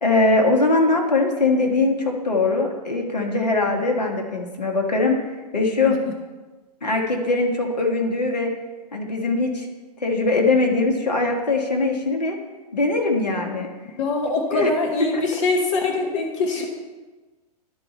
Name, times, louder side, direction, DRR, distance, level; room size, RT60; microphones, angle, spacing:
voice 1, 0.0-6.0 6.8-8.5 8.9-9.7 10.0-12.4 12.7-13.7 14.5-14.7 15.1-15.2, left 3 dB, 80° left, 2 dB, 1.5 m, -21 dB
voice 2, 14.0-16.7, left 3 dB, 50° left, 3 dB, 1.2 m, -23 dB
12.0 x 4.1 x 4.4 m, 1.3 s
figure-of-eight pair, 110°, 21 cm